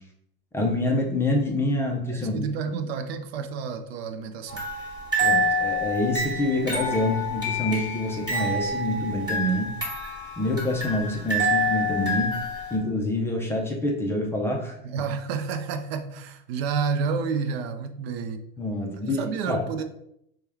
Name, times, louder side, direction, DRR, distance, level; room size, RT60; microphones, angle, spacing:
voice 1, 0.5-2.4 5.2-9.8 10.4-12.4 12.7-14.8 18.6-19.6, left 1 dB, 10° left, 0 dB, 0.4 m, -26 dB
voice 2, 2.1-4.7 14.8-18.4 19.0-19.8, right 5 dB, 80° right, 8 dB, 0.6 m, -30 dB
sound 1, 4.5-12.8, equal, 15° right, 1.4 m, -27 dB
4.5 x 2.3 x 3.4 m, 0.76 s
supercardioid pair, 140°, 30 cm